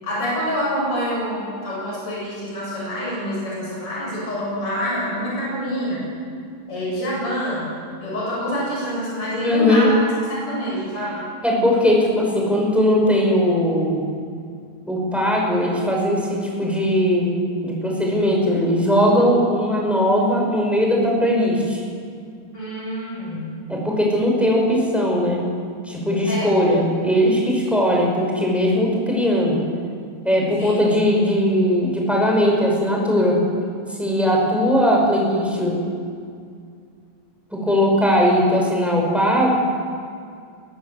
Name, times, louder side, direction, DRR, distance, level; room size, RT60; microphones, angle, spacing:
voice 1, 0.0-6.0 6.7-7.7 8.0-11.2 22.5-23.5 26.3-26.5 30.6-30.7, equal, 40° left, -5 dB, 8.6 m, -26 dB
voice 2, 9.4-9.9 11.4-14.0 14.9-17.3 17.6-21.8 23.7-25.4 25.8-29.6 30.2-33.4 33.9-35.9 37.5-39.5, equal, ahead, -2 dB, 5.3 m, -19 dB
20.5 x 20.0 x 7.9 m, 2.2 s
omnidirectional pair, 3.9 m